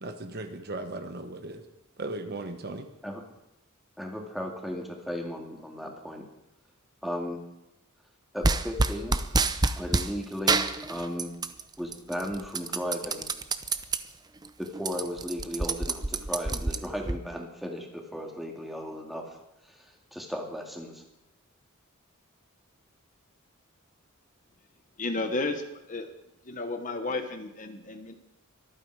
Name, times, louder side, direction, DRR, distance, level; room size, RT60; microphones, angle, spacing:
voice 1, 0.0-1.6 2.0-2.9, right 2 dB, 50° right, 7 dB, 1.3 m, -37 dB
voice 2, 4.0-6.2 7.0-7.4 8.3-9.2 9.8-11.3 11.8-13.3 14.6-19.2 19.7-21.0, equal, ahead, 0 dB, 2.4 m, -35 dB
sound 1, 8.4-10.1 10.5-11.6 11.9-14.0 14.4-14.5 14.7-17.2, right 3 dB, 20° right, 0.7 m, -27 dB
voice 3, 25.0-25.6 25.9-26.1 26.4-28.1, left 2 dB, 35° left, 7 dB, 1.2 m, -32 dB
24.0 x 9.1 x 4.8 m, 0.88 s
head